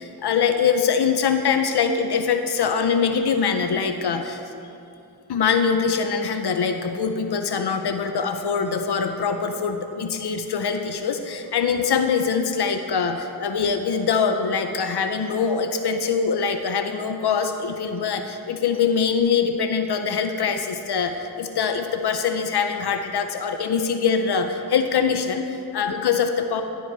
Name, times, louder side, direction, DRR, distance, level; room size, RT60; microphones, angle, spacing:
voice 1, 0.0-4.4 5.3-26.6, left 6 dB, 75° left, 7 dB, 0.6 m, -23 dB
12.5 x 4.6 x 4.6 m, 2.6 s
cardioid pair, 50°, 40 cm